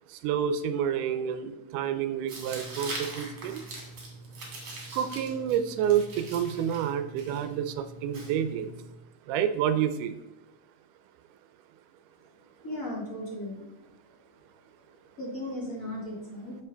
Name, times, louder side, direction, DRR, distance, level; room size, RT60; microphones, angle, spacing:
voice 1, 0.2-3.6 4.9-8.7 9.3-10.1, right 9 dB, 80° right, 10 dB, 2.0 m, -29 dB
Tearing, 2.3-8.9, right 2 dB, 40° right, 2.8 m, -42 dB
voice 2, 12.6-13.7 15.2-16.6, left 1 dB, 30° left, -4 dB, 2.0 m, -36 dB
9.7 x 7.4 x 3.4 m, 0.99 s
omnidirectional pair, 3.9 m